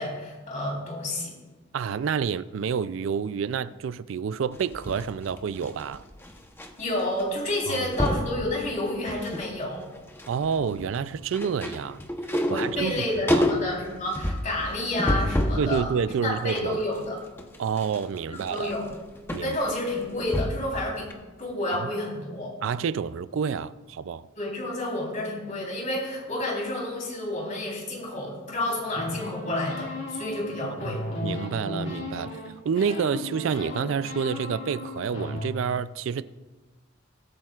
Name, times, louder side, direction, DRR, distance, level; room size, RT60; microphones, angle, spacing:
voice 1, 0.0-1.3 6.8-9.9 12.4-15.9 16.2-17.2 18.3-18.9 19.4-21.1 21.4-22.5 24.4-31.0, left 1 dB, 40° left, 3.7 m, -30 dB
voice 2, 1.7-6.0 7.7-7.9 10.3-12.0 12.5-13.5 15.6-16.8 17.6-18.7 19.3-19.6 21.8-21.9 22.6-24.3 30.6-32.4 32.6-36.2, right 6 dB, 70° right, 0.3 m, -29 dB
sound 1, 4.5-6.7 7.0-7.2 7.5-8.3 8.9-9.5 9.8-15.7 16.1-20.8 21.1-21.2, left 1 dB, 10° left, 0.8 m, -29 dB
sound 2, 28.9-32.5 32.8-35.5, left 2 dB, 70° left, 2.5 m, -35 dB
22.0 x 8.8 x 2.4 m
head